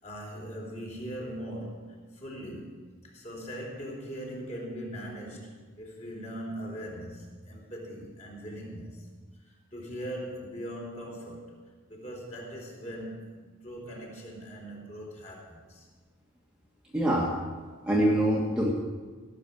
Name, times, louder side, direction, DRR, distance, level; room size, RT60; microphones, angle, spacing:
voice 1, 0.0-2.8 3.0-9.1 9.4-11.5 11.9-15.9, equal, 35° left, -2 dB, 3.8 m, -40 dB
voice 2, 16.9-17.4 17.8-18.7, right 1 dB, 5° right, -4 dB, 1.7 m, -24 dB
17.0 x 7.0 x 9.1 m, 1.4 s
head